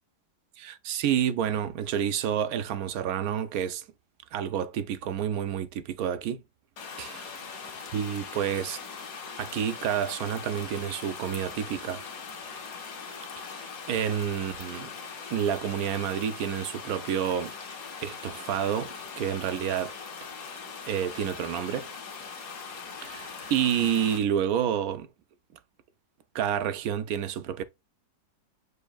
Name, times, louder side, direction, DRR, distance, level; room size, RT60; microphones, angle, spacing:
voice 1, 0.6-3.8 4.3-6.4 7.0-7.1 7.9-8.8 9.4-12.0 13.9-14.9 15.3-17.5 18.0-19.9 20.9-21.9 23.0-25.1 26.3-27.6, right 9 dB, 70° right, 1.0 m, -29 dB
sound 1, 6.8-24.2, left 5 dB, 65° left, 1.5 m, -41 dB
7.8 x 2.7 x 2.2 m
omnidirectional pair, 1.7 m